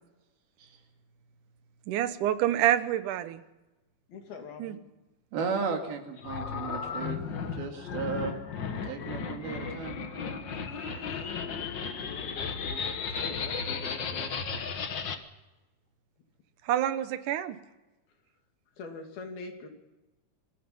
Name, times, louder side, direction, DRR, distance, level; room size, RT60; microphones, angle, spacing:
voice 1, 1.9-3.4 4.6-4.8 16.7-17.6, right 12 dB, 65° right, 11 dB, 2.4 m, -27 dB
voice 2, 4.1-4.8 11.2-12.9 13.1-14.3 18.8-19.7, left 4 dB, 80° left, 3 dB, 4.7 m, -44 dB
voice 3, 5.3-7.2 7.5-8.4 8.9-10.0, right 5 dB, 90° right, 3 dB, 4.3 m, -34 dB
sound 1, 6.2-15.2, left 5 dB, 60° left, 1.2 m, -35 dB
27.0 x 20.5 x 5.6 m, 1.1 s
omnidirectional pair, 4.2 m